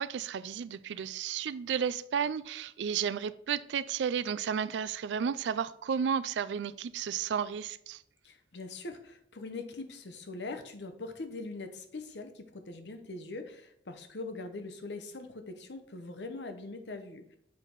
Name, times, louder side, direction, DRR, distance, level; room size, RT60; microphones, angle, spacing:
voice 1, 0.0-8.0, right 7 dB, 85° right, 0.3 m, -33 dB
voice 2, 8.2-17.4, left 3 dB, 80° left, 0.8 m, -42 dB
7.4 x 4.5 x 3.9 m
head